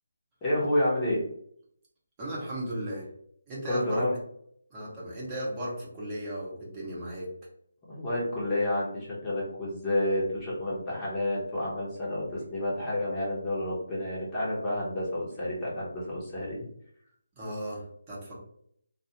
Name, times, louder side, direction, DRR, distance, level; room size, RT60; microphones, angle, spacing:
voice 1, 0.4-1.2 3.6-4.2 7.9-16.7, left 1 dB, 15° left, -7 dB, 0.8 m, -29 dB
voice 2, 2.2-3.1 3.5-4.1 4.7-7.3 17.4-18.4, right 1 dB, 20° right, -6 dB, 0.9 m, -36 dB
2.4 x 2.3 x 2.8 m, 0.67 s
figure-of-eight pair, 160°, 0 cm